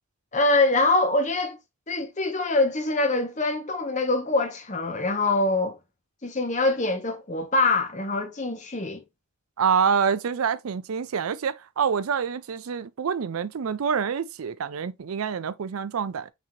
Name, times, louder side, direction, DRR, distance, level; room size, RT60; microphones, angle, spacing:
voice 1, 0.3-1.6 1.9-5.8 6.2-9.0, left 2 dB, 35° left, 1.0 m, -24 dB
voice 2, 9.6-16.3, right 6 dB, 85° right, 0.5 m, -26 dB
6.1 x 2.8 x 3.0 m
head